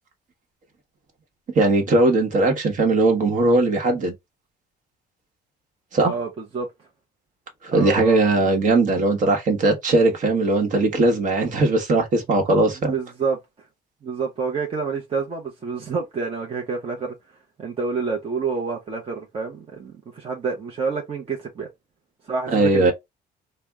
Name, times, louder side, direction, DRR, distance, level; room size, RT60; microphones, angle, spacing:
voice 1, 1.5-4.1 5.9-6.1 7.7-13.0 22.5-22.9, right 2 dB, 50° right, 1.2 m, -19 dB
voice 2, 6.0-6.7 7.7-8.3 12.8-13.7 14.0-17.1 17.6-21.7 22.2-22.9, right 5 dB, 35° right, 0.8 m, -28 dB
3.3 x 2.2 x 3.4 m
cardioid pair, 110°, 17 cm